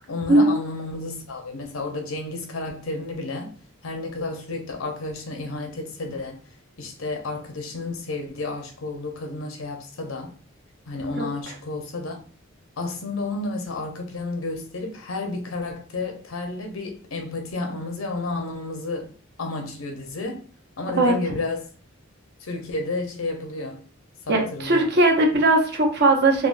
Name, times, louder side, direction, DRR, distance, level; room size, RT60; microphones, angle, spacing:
voice 1, 0.1-3.5 3.8-6.4 6.8-10.3 10.9-12.2 12.8-20.4 20.8-21.7 22.4-23.8 24.3-24.9, left 2 dB, 80° left, 0.7 m, -31 dB
voice 2, 24.3-26.5, right 2 dB, 55° right, 0.7 m, -19 dB
3.5 x 2.1 x 2.5 m
head